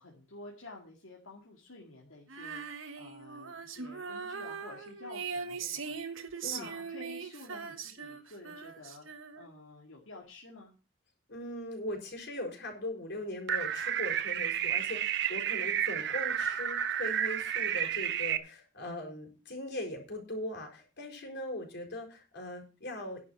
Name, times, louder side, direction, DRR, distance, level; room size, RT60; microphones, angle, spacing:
voice 1, 0.0-2.6 3.0-6.0 6.5-9.1 9.3-10.7, left 2 dB, 80° left, -1 dB, 2.3 m, -50 dB
Female singing, 2.3-9.6, right 6 dB, 80° right, 1.5 m, -40 dB
voice 2, 6.4-6.7 11.3-23.2, left 1 dB, 60° left, 3 dB, 4.4 m, -40 dB
sound 1, 13.5-18.4, right 9 dB, 60° right, 0.9 m, -31 dB
10.5 x 6.7 x 7.1 m, 0.33 s
head